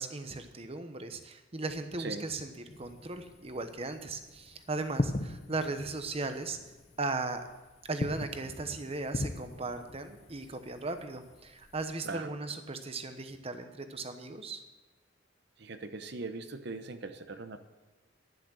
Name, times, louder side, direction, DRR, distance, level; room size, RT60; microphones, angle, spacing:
voice 1, 0.0-6.6 7.0-7.5 7.8-14.6, right 3 dB, 30° right, 8 dB, 1.0 m, -37 dB
sound 1, 2.7-11.9, left 2 dB, 35° left, 0.6 m, -40 dB
voice 2, 15.6-17.6, right 3 dB, 60° right, 9 dB, 0.9 m, -40 dB
11.0 x 10.5 x 6.4 m, 1.2 s
head